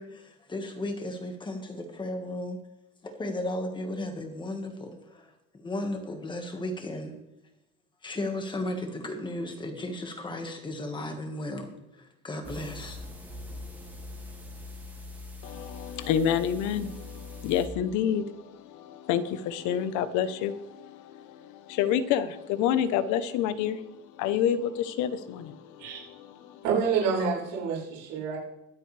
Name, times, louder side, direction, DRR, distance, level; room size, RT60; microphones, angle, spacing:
voice 1, 0.0-2.6 3.0-5.3 5.5-7.1 8.0-13.0, left 1 dB, 15° left, 1.7 m, -35 dB
sound 1, 12.4-17.7, left 2 dB, 5° right, 1.6 m, -42 dB
voice 2, 15.4-26.6, left 9 dB, 70° left, 1.0 m, -29 dB
voice 3, 26.6-28.4, right 6 dB, 85° right, 5.8 m, -27 dB
23.0 x 8.0 x 3.4 m
cardioid pair, 165°, 31 cm